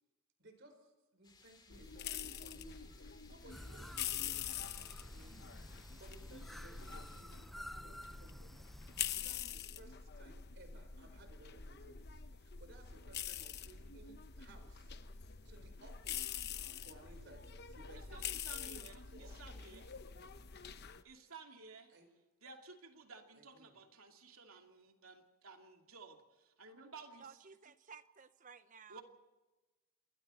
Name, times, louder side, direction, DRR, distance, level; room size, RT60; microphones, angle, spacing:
voice 1, 0.4-8.5 8.9-14.9 15.2-16.4 16.8-19.6 21.9-22.1 23.3-23.8, right 2 dB, 55° right, 6 dB, 4.4 m, -61 dB
sound 1, 1.2-7.2, left 4 dB, 20° left, 3.5 m, -64 dB
sound 2, 1.7-21.0, left 8 dB, 50° left, 1.0 m, -45 dB
sound 3, 3.5-9.1, equal, ahead, 0.7 m, -53 dB
voice 2, 18.1-19.9 21.0-21.9 22.4-27.4 28.9-29.0, right 4 dB, 75° right, 3 dB, 2.7 m, -55 dB
voice 3, 27.2-29.0, right 6 dB, 35° right, 12 dB, 0.9 m, -56 dB
28.0 x 22.0 x 4.4 m, 1.1 s
head